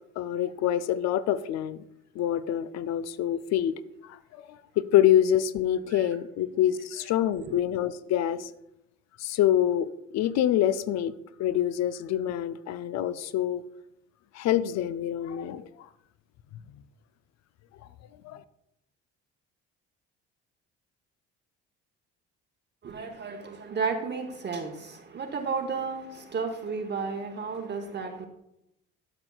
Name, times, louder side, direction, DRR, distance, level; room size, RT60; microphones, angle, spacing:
voice 1, 0.2-1.8 2.2-4.4 4.8-8.5 9.2-9.9 10.1-11.1 11.4-13.6 14.3-15.7 18.2-18.4, left 11 dB, 65° left, 0.5 m, -26 dB
voice 2, 22.8-28.3, right 5 dB, 35° right, 0.9 m, -33 dB
12.0 x 6.0 x 2.3 m
supercardioid pair, 80°, 29 cm